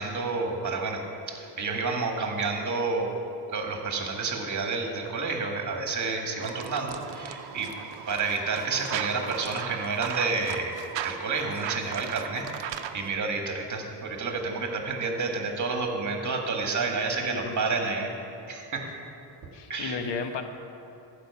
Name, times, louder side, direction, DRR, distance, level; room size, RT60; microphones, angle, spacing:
voice 1, 0.0-3.1 3.5-7.7 8.1-18.1 18.5-18.9 19.7-20.0, right 4 dB, 40° right, 2 dB, 1.7 m, -30 dB
sound 1, 6.4-13.1, right 10 dB, 75° right, 0.7 m, -37 dB
voice 2, 17.2-17.6 19.5-20.4, left 5 dB, 70° left, 7 dB, 1.0 m, -33 dB
14.5 x 5.2 x 7.0 m, 2.8 s
cardioid pair, 125°, 45 cm